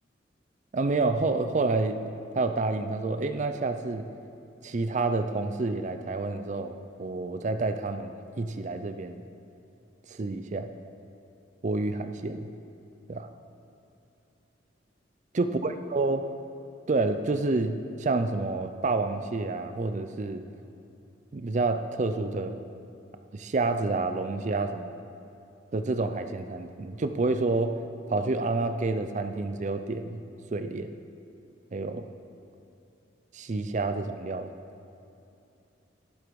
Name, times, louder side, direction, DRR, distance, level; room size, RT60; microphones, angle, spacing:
voice 1, 0.7-2.0 2.3-4.0 4.6-9.2 10.1-10.7 11.6-12.5 13.1-13.3 15.4-16.2 16.9-20.4 21.3-22.6 23.3-25.0 25.7-27.8 28.1-30.2 30.5-30.9 31.7-32.1 33.3-34.5, right 3 dB, 40° right, 8 dB, 0.5 m, -29 dB
12.0 x 10.5 x 4.7 m, 2.8 s
head